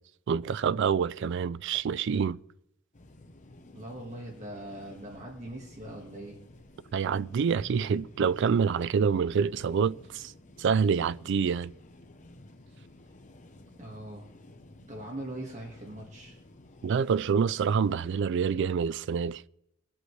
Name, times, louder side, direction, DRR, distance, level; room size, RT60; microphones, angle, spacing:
voice 1, 0.3-2.4 6.9-10.3 10.6-11.7 16.8-19.4, right 6 dB, 55° right, 0.3 m, -27 dB
sound 1, 2.9-18.2, left 1 dB, 35° left, 0.8 m, -53 dB
voice 2, 3.7-6.4 13.8-14.3 14.9-16.4, right 1 dB, 35° right, 1.7 m, -41 dB
21.0 x 7.8 x 3.2 m
head